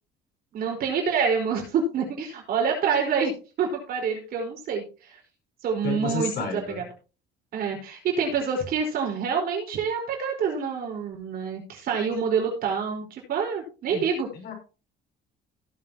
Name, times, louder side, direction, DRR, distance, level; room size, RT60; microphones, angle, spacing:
voice 1, 0.5-3.3 3.6-4.8 5.1-5.2 5.6-6.8 7.5-14.3, right 6 dB, 55° right, 0 dB, 4.7 m, -27 dB
voice 2, 5.8-6.8 13.9-14.0 14.3-14.5, left 4 dB, 55° left, 3 dB, 4.6 m, -31 dB
17.0 x 7.7 x 3.0 m, 0.34 s
cardioid pair, 150°, 19 cm